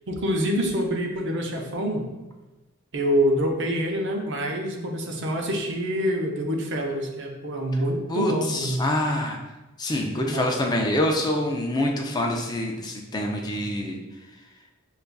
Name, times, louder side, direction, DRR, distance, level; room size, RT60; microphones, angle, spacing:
voice 1, 0.1-2.1 2.9-8.9 10.2-10.8, equal, 60° right, 1 dB, 0.6 m, -26 dB
voice 2, 8.1-9.4 9.8-14.0, left 1 dB, 20° left, 1 dB, 0.4 m, -26 dB
6.4 x 2.3 x 2.2 m, 1.1 s
head